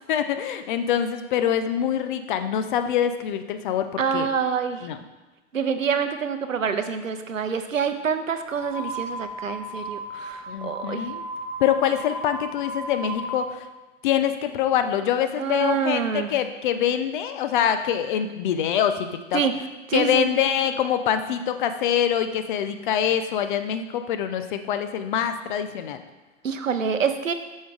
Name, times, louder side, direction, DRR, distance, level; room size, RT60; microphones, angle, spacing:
voice 1, 0.1-4.3 4.8-5.0 10.5-11.2 11.6-13.7 14.0-19.4 19.9-26.0, left 9 dB, 40° left, 9 dB, 0.6 m, -25 dB
voice 2, 4.0-4.9 5.5-11.1 15.4-16.3 19.3-19.5 19.9-20.3 26.4-27.3, right 6 dB, 85° right, 9 dB, 0.7 m, -26 dB
sound 1, 8.5-13.5, right 1 dB, 5° right, 0.7 m, -35 dB
6.4 x 6.0 x 3.5 m, 1.2 s
figure-of-eight pair, 105°, 38 cm